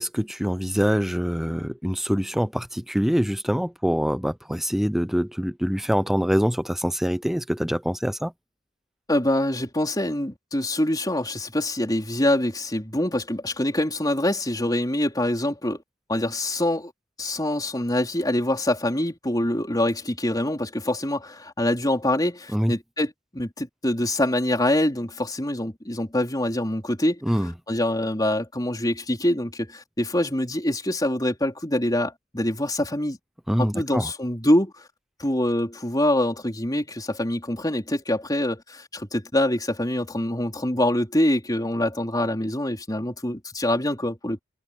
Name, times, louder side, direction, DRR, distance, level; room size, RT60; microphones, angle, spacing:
voice 1, 0.0-8.3 22.5-22.7 27.2-27.5 33.5-34.1, equal, ahead, 0.7 m, -24 dB
voice 2, 9.1-15.8 16.1-16.9 17.2-33.2 33.6-34.9 35.2-44.4, left 1 dB, 20° left, 4.1 m, -25 dB
head